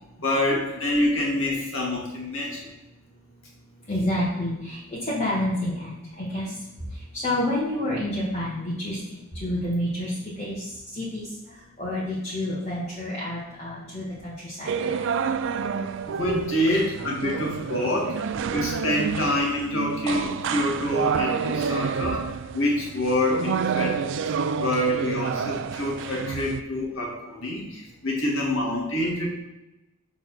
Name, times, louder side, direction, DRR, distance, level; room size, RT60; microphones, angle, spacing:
voice 1, 0.2-2.7 16.1-18.2 18.5-22.3 22.5-24.2 24.6-29.3, left 1 dB, 65° left, -2 dB, 2.0 m, -26 dB
voice 2, 3.9-6.4 7.1-9.0 9.4-10.1 10.4-10.6 10.9-11.3 11.8-15.0, left 1 dB, 30° left, -8 dB, 1.7 m, -28 dB
sound 1, 14.7-26.6, right 6 dB, 60° right, 0.4 m, -29 dB
6.4 x 4.0 x 5.9 m, 0.96 s
head